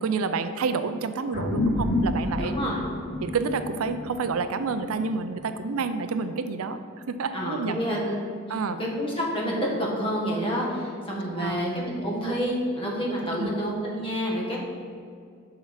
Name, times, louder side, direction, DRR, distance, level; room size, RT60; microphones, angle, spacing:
voice 1, 0.0-2.6 3.2-6.8 7.1-7.8 8.5-8.8 11.3-11.6 13.4-13.6, right 4 dB, 90° right, 10 dB, 0.5 m, -29 dB
sound 1, 1.3-6.1, left 1 dB, 45° left, 0.8 m, -30 dB
voice 2, 2.4-2.8 7.3-14.6, equal, 25° left, -3 dB, 1.6 m, -28 dB
7.1 x 5.0 x 5.8 m, 2.3 s
head